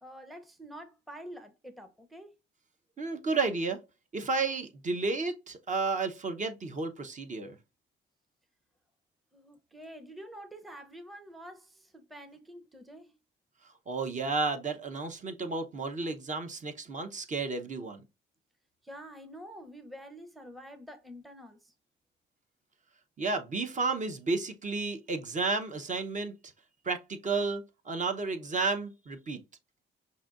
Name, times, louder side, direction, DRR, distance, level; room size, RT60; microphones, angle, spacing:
voice 1, 0.0-2.3 9.3-13.1 18.8-21.7, equal, ahead, 0.7 m, -47 dB
voice 2, 3.0-3.8 4.1-7.6 13.9-18.0 23.2-26.3 26.8-29.4, right 3 dB, 40° right, 0.8 m, -32 dB
5.8 x 2.7 x 2.4 m
cardioid pair, 90°, 20 cm